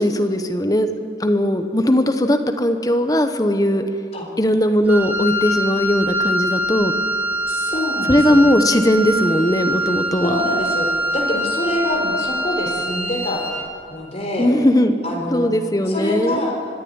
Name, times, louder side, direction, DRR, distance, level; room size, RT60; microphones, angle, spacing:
voice 1, 0.0-3.8 4.4-6.9 8.1-10.4 14.4-15.0 15.3-16.4, left 1 dB, 20° left, 7 dB, 1.1 m, -18 dB
Wind instrument woodwind instrument, 4.8-13.7, equal, 10° right, 2.1 m, -24 dB
voice 2, 7.5-8.4 10.2-13.5 13.9-14.5 15.0-15.4 15.9-16.6, left 1 dB, 35° left, 0 dB, 4.0 m, -25 dB
25.0 x 10.5 x 9.7 m, 2.6 s
head